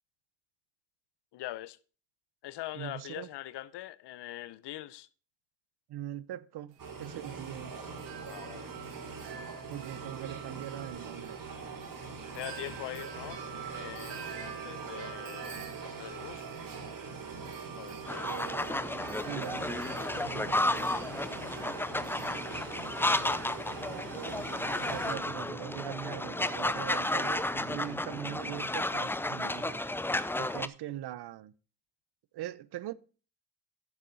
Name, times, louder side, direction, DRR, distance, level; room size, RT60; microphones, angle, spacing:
voice 1, 1.3-1.8 2.4-5.1 8.3-8.7 12.3-16.4 17.8-18.3 21.9-22.0 23.1-23.4, left 15 dB, 75° left, 0.8 m, -43 dB
voice 2, 2.7-3.3 5.9-7.9 9.7-11.4 18.2-18.8 19.3-21.1 23.9-29.8 30.4-31.5 32.3-32.9, right 13 dB, 65° right, 0.8 m, -41 dB
Wind chime, 6.7-23.6, right 8 dB, 90° right, 2.2 m, -48 dB
sound 1, 6.8-25.2, right 4 dB, 50° right, 3.7 m, -43 dB
sound 2, 18.1-30.7, left 1 dB, 5° left, 0.5 m, -32 dB
11.0 x 7.2 x 3.9 m
supercardioid pair, 70°, 42 cm